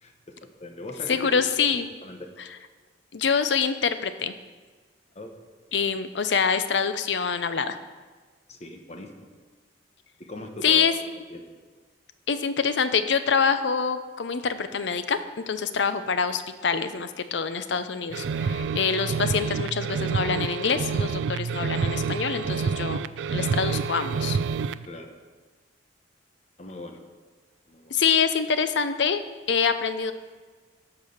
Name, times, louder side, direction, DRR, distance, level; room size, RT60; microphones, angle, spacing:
voice 1, 0.0-1.4 2.0-2.2 5.1-5.3 8.5-9.3 10.2-10.8 11.3-11.4 24.9-25.1 26.6-27.0 27.7-28.0, left 1 dB, 35° left, 4 dB, 1.1 m, -40 dB
voice 2, 1.1-1.9 3.1-4.3 5.7-7.8 10.6-10.9 12.3-15.2 15.5-23.0 23.3-24.4 27.9-29.2 29.5-30.1, left 6 dB, 70° left, 11 dB, 0.6 m, -25 dB
sound 1, 18.1-24.8, right 5 dB, 75° right, 0.3 m, -28 dB
12.5 x 4.9 x 6.5 m, 1.4 s
head